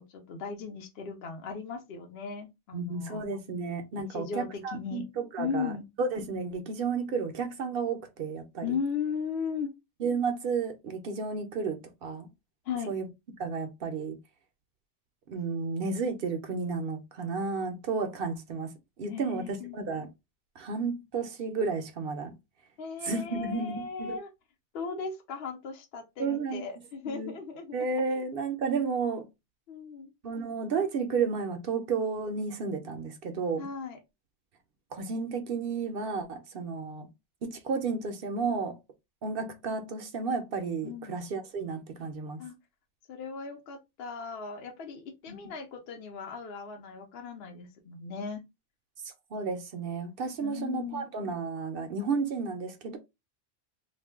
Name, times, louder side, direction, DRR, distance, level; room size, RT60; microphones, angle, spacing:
voice 1, 0.0-3.2 4.1-5.0 5.4-5.8 8.6-9.7 12.6-12.9 19.1-19.8 22.8-24.3 24.7-28.2 29.7-30.1 33.6-34.0 40.8-41.2 42.4-42.5 43.1-48.4 50.4-51.1, left 6 dB, 65° left, 0.8 m, -37 dB
voice 2, 2.7-5.7 6.0-8.7 10.0-12.3 12.9-13.1 13.4-14.2 15.3-18.7 19.0-20.1 20.6-22.3 23.0-24.2 26.2-26.6 27.1-27.3 27.7-29.2 30.2-33.7 34.9-37.1 37.4-38.8 39.2-42.4 45.3-45.4 49.0-53.0, right 4 dB, 60° right, 0.7 m, -32 dB
2.4 x 2.2 x 3.3 m
omnidirectional pair, 1.2 m